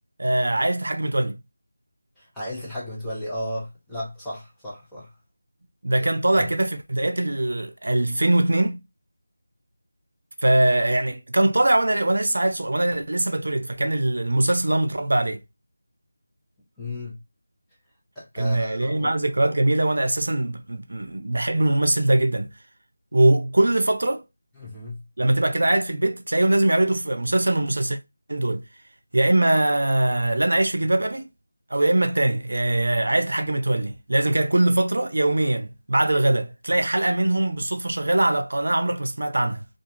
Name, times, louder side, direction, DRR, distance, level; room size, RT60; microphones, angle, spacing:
voice 1, 0.2-1.3 5.8-8.8 10.4-15.4 18.4-22.5 23.1-24.2 25.2-28.0 28.3-28.6 29.1-31.3 31.7-39.6, right 1 dB, 75° right, 0.4 m, -22 dB
voice 2, 2.2-5.1 6.0-6.1 6.4-6.5 16.8-17.2 18.2-19.1 24.6-25.0, left 1 dB, 5° left, 0.8 m, -34 dB
2.4 x 2.3 x 2.8 m
figure-of-eight pair, 170°, 0 cm